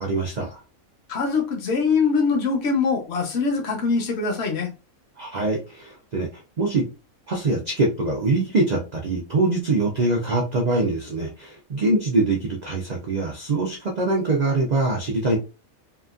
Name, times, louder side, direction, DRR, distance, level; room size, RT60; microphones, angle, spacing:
voice 1, 0.0-0.6 5.2-6.8 7.3-15.4, right 2 dB, 80° right, 0 dB, 0.3 m, -23 dB
voice 2, 1.1-4.7, left 4 dB, 55° left, 2 dB, 1.0 m, -23 dB
2.9 x 2.3 x 2.4 m, 0.32 s
omnidirectional pair, 1.4 m